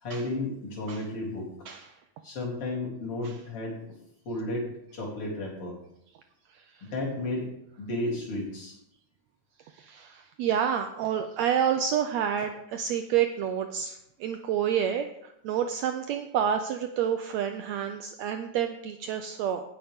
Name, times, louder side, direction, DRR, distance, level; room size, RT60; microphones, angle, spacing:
voice 1, 0.0-1.5 2.2-3.8 4.3-5.7 6.8-7.5 7.8-8.8, left 2 dB, 45° left, -4 dB, 4.0 m, -33 dB
voice 2, 9.8-19.6, right 8 dB, 75° right, 7 dB, 1.6 m, -29 dB
18.0 x 7.2 x 3.6 m, 0.79 s
omnidirectional pair, 3.6 m